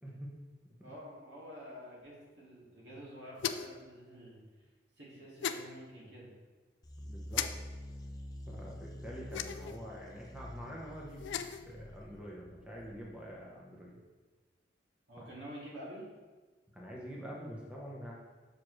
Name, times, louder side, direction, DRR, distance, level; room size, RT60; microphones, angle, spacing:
voice 1, 0.0-0.3 0.6-0.7 7.0-7.5 8.5-14.0 15.2-15.3 16.7-18.1, equal, 5° right, -4 dB, 0.9 m, -46 dB
voice 2, 0.8-4.7 5.0-6.3 15.1-16.1, equal, 70° right, -5 dB, 2.2 m, -49 dB
sound 1, 3.4-3.8 5.4-5.6 7.3-7.5 9.3-9.8 11.1-11.6, left 9 dB, 90° left, 0.4 m, -36 dB
sound 2, 6.8-13.3, left 1 dB, 20° left, 0.6 m, -47 dB
6.8 x 6.1 x 3.2 m, 1.3 s
head